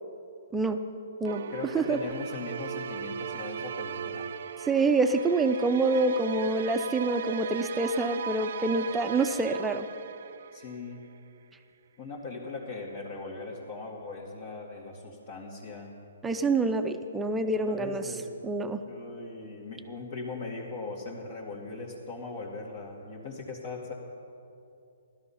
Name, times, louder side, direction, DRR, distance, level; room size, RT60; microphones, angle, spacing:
voice 1, 0.5-0.8 1.2-2.0 4.7-9.9 16.2-18.1 18.4-18.8, right 3 dB, 10° right, 6 dB, 0.7 m, -27 dB
Epic Orchestral Strings, 1.2-11.0, right 7 dB, 60° right, 0.6 m, -38 dB
voice 2, 1.5-4.3 10.5-11.0 12.0-15.9 17.5-18.4 18.9-23.9, left 3 dB, 45° left, -4 dB, 2.2 m, -39 dB
16.0 x 12.5 x 5.7 m, 2.6 s
hypercardioid pair, 135°, 0 cm